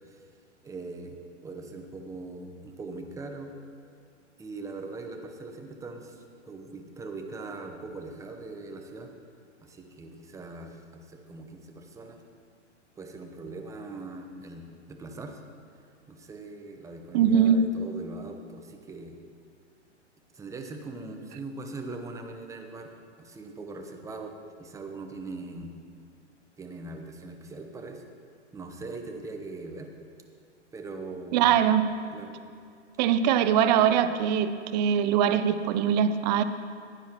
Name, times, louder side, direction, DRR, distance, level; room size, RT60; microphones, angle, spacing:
voice 1, 0.6-3.5 4.4-9.1 9.6-12.2 13.0-15.4 16.1-19.2 20.3-22.9 23.2-24.3 24.6-25.7 26.6-28.0 28.5-29.9 30.7-31.6 32.1-32.3, right 3 dB, 10° right, 4 dB, 0.8 m, -41 dB
voice 2, 17.1-17.6 31.3-31.8 33.0-36.4, right 9 dB, 35° right, 11 dB, 0.6 m, -22 dB
15.5 x 9.3 x 3.0 m, 2.4 s
hypercardioid pair, 120°, 37 cm